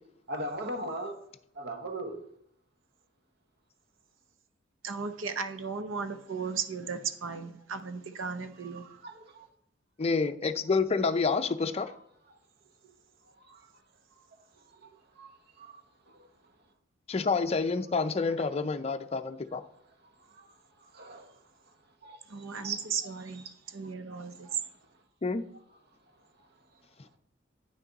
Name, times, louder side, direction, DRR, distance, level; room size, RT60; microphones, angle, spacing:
voice 1, 0.3-1.2 1.6-2.2 8.7-9.5 13.5-13.6 14.8-14.9 15.2-15.3 15.6-15.7 20.9-21.3 22.0-22.2 22.6-22.8 24.1-24.2 24.4-24.5, right 2 dB, 55° right, 1.1 m, -38 dB
voice 2, 4.8-8.9 22.3-24.5, right 5 dB, 90° right, 0.7 m, -36 dB
voice 3, 10.0-11.9 17.1-19.6 25.2-25.4, left 4 dB, 30° left, 0.5 m, -28 dB
9.1 x 6.1 x 4.0 m
head